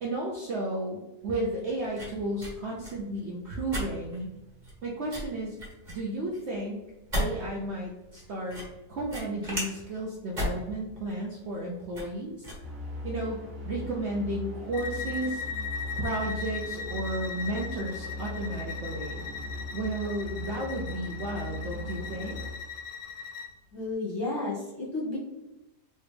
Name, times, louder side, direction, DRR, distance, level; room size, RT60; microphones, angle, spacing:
voice 1, 0.0-4.3 4.8-5.6 5.9-6.8 7.2-8.6 8.9-12.5 13.0-15.4 16.0-19.3 19.7-22.4, right 1 dB, 85° right, -3 dB, 0.6 m, -33 dB
sound 1, 1.2-13.3, equal, 30° right, 1.2 m, -38 dB
sound 2, 12.6-22.5, left 1 dB, 65° right, 1.4 m, -39 dB
Bowed string instrument, 14.7-23.5, left 5 dB, 70° left, 1.0 m, -39 dB
voice 2, 23.7-25.2, left 2 dB, 20° left, -8 dB, 0.9 m, -32 dB
3.2 x 2.8 x 3.3 m, 0.99 s
omnidirectional pair, 1.8 m